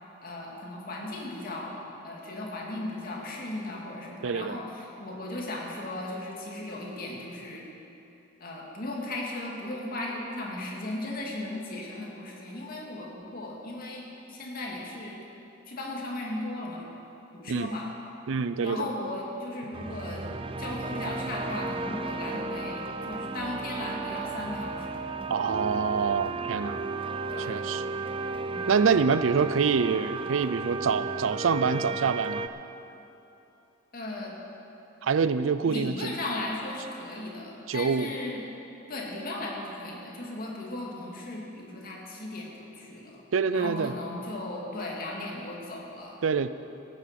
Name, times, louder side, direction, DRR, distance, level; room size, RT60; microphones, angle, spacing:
voice 1, 0.2-1.8 2.0-7.6 8.4-15.2 15.7-16.8 17.3-17.9 18.6-20.2 20.6-25.1 27.3-27.6 28.5-28.7 33.9-34.3 35.7-38.5 38.9-43.1 43.5-46.2, left 2 dB, 50° left, -2 dB, 2.3 m, -36 dB
voice 2, 4.2-4.6 17.5-17.7 18.3-18.9 25.3-26.8 27.5-27.8 28.7-32.5 35.0-36.2 37.7-38.2 43.3-43.9 46.2-46.5, right 5 dB, 80° right, 13 dB, 0.5 m, -26 dB
sound 1, 19.7-32.5, right 3 dB, 25° right, 0.5 m, -34 dB
16.0 x 9.4 x 5.9 m, 2.9 s
head